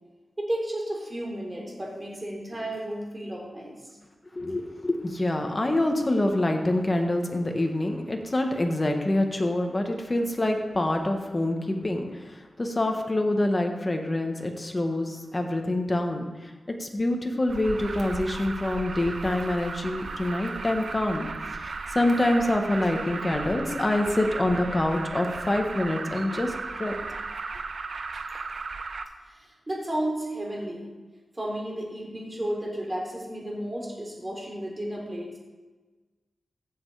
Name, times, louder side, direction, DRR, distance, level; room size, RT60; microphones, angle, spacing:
voice 1, 0.4-3.8 29.3-30.9 31.3-35.4, right 1 dB, 20° right, -2 dB, 3.6 m, -33 dB
voice 2, 4.3-16.5 16.8-21.3 21.5-26.9, left 1 dB, 25° left, 3 dB, 1.5 m, -26 dB
Alarm, 17.5-29.0, right 4 dB, 65° right, 0.9 m, -35 dB
15.0 x 7.9 x 4.9 m, 1.3 s
wide cardioid pair, 110°, 0 cm